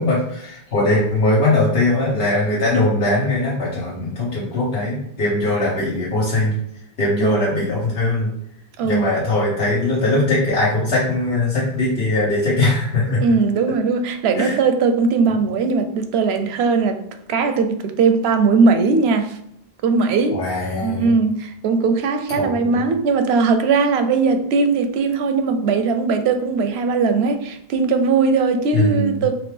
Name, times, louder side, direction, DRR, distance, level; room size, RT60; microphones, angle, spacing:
voice 1, 0.0-6.6 7.0-8.3 8.8-13.2 14.4-14.6 20.3-21.1 22.4-22.8 28.7-29.2, left 2 dB, 85° left, -7 dB, 1.3 m, -20 dB
voice 2, 7.2-7.6 8.8-9.1 13.2-17.0 17.3-19.4 19.8-20.5 20.8-29.4, right 4 dB, 85° right, 7 dB, 0.8 m, -19 dB
4.1 x 3.0 x 3.2 m, 0.74 s
omnidirectional pair, 1.0 m